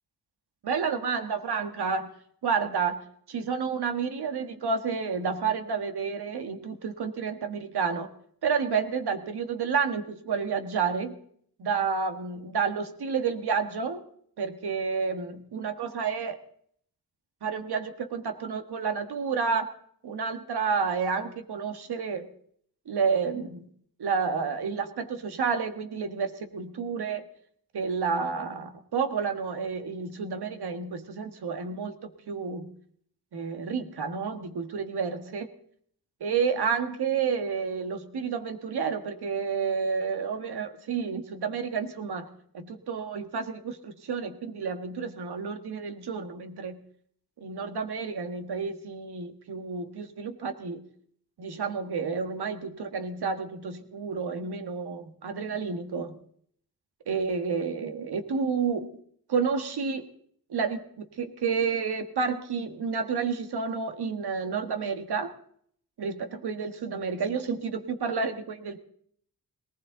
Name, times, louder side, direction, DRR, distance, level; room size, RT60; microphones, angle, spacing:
voice 1, 0.6-2.1 2.4-3.0 3.3-8.1 8.4-11.2 11.6-14.0 14.4-16.4 17.4-19.7 20.0-22.3 22.8-23.7 24.0-27.2 27.7-32.7 33.3-35.5 36.2-42.3 42.5-46.8 47.4-50.9 51.4-56.2 57.1-58.9 59.3-60.1 60.5-65.3 66.0-68.8, right 5 dB, 80° right, 8 dB, 1.6 m, -30 dB
19.5 x 19.0 x 3.9 m, 0.62 s
wide cardioid pair, 95°, 38 cm